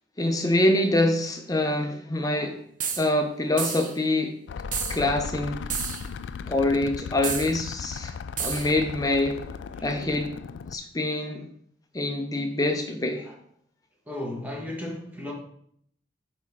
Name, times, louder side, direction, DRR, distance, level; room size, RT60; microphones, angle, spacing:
voice 1, 0.2-2.6 3.0-4.4 4.9-5.6 6.5-8.1 8.4-9.4 9.8-10.3 10.7-11.4 11.9-13.3, left 1 dB, 20° left, 0.6 m, -25 dB
sound 1, 2.8-3.1 3.6-4.0 4.7-5.0 5.7-6.1 7.2-7.5 8.4-8.7, right 7 dB, 45° right, 0.7 m, -30 dB
sound 2, 4.5-10.8, left 5 dB, 85° left, 0.3 m, -37 dB
voice 2, 9.7-10.3 13.3-13.4 14.1-15.3, left 1 dB, 10° right, 1.3 m, -35 dB
6.1 x 4.2 x 4.7 m
head